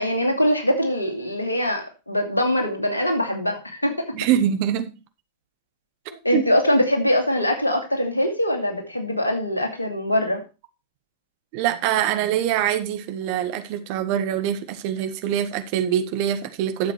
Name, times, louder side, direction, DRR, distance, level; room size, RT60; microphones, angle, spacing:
voice 1, 0.0-4.1 6.2-10.4, left 1 dB, 80° left, 2.6 m, -23 dB
voice 2, 4.1-5.0 6.3-6.4 11.5-16.9, right 10 dB, 45° right, 1.5 m, -24 dB
11.5 x 7.6 x 4.5 m
figure-of-eight pair, 90°, 0 cm